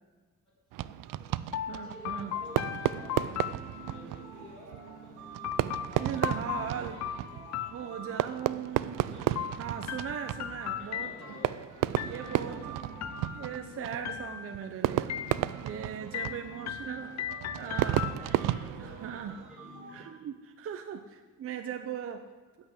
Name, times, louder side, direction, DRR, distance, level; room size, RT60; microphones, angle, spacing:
Fireworks, 0.7-19.5, right 14 dB, 80° right, 0.5 m, -34 dB
voice 1, 0.8-3.2 3.8-6.5 6.7-7.9 9.1-9.4 10.8-11.5 11.9-13.0 16.9-17.1 17.5-19.9, left 1 dB, ahead, -9 dB, 4.1 m, -52 dB
sound 1, 1.5-4.3 5.4-8.4 9.4-11.5 12.0-12.6 13.0-13.7 14.0-14.7 15.1-15.7 16.1-18.6, left 10 dB, 55° left, 0.6 m, -38 dB
voice 2, 1.7-2.3 6.0-7.0 7.7-9.1 9.6-11.1 12.0-12.6 13.3-15.1 15.6-17.1 17.6-18.1 19.0-19.4 19.9-22.2, right 8 dB, 45° right, 6 dB, 0.7 m, -38 dB
sound 2, 2.2-20.1, right 4 dB, 65° right, 1.9 m, -49 dB
15.0 x 5.9 x 8.1 m, 1.4 s
cardioid pair, 170°, 32 cm